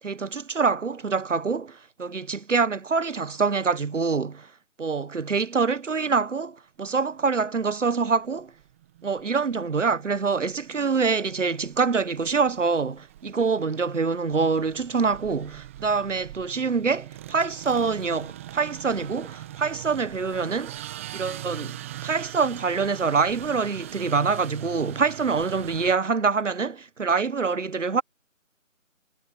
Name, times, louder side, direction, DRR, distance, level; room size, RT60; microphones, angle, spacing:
voice 1, 0.0-4.5 4.8-8.5 9.0-20.8 21.1-28.0, right 5 dB, 65° right, 1.5 m, -25 dB
sound 1, 7.2-7.3 7.7-25.9, right 13 dB, 10° right, 1.4 m, -42 dB
figure-of-eight pair, 160°, 40 cm